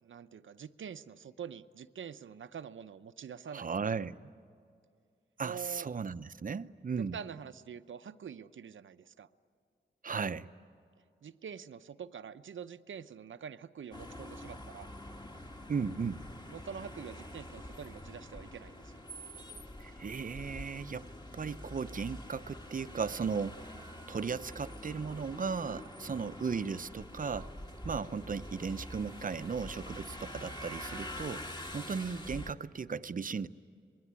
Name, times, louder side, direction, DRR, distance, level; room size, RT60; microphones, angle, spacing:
voice 1, 0.0-3.7 5.4-5.9 7.0-9.3 11.2-14.9 16.5-19.0, right 7 dB, 85° right, 11 dB, 0.8 m, -45 dB
voice 2, 3.5-4.3 5.4-7.2 10.0-10.5 15.7-16.2 19.8-21.1 21.3-23.8 24.1-27.5 27.8-31.4 31.7-33.5, right 5 dB, 45° right, 13 dB, 0.7 m, -36 dB
sound 1, 13.9-32.5, left 1 dB, 20° left, 1.8 m, -46 dB
26.0 x 22.0 x 9.7 m, 2.3 s
wide cardioid pair, 115°, 20 cm